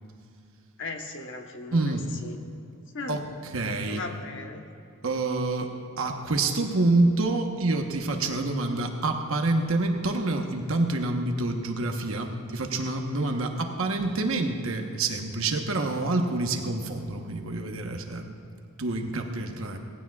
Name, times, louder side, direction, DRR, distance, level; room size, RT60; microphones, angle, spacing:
voice 1, 0.8-2.4 2.9-3.2 3.9-4.6, left 3 dB, 55° left, 3 dB, 1.1 m, -37 dB
voice 2, 1.7-2.1 3.1-4.0 5.0-5.7 6.0-18.3 18.8-19.8, right 2 dB, 65° right, 4 dB, 1.1 m, -27 dB
18.5 x 15.5 x 2.4 m, 2.6 s
head